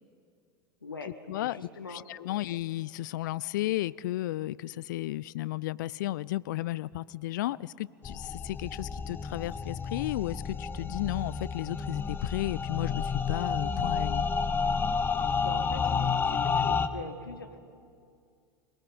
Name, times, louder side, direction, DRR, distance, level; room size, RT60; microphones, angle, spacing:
voice 1, 0.8-2.0 2.3-2.4 15.1-17.6, left 3 dB, 80° left, 6 dB, 1.6 m, -42 dB
voice 2, 1.9-14.2, left 16 dB, 60° left, 20 dB, 0.4 m, -33 dB
sound 1, 8.0-16.9, left 5 dB, 20° left, 0.9 m, -30 dB
26.0 x 19.0 x 5.5 m, 2.3 s
figure-of-eight pair, 80°, 11 cm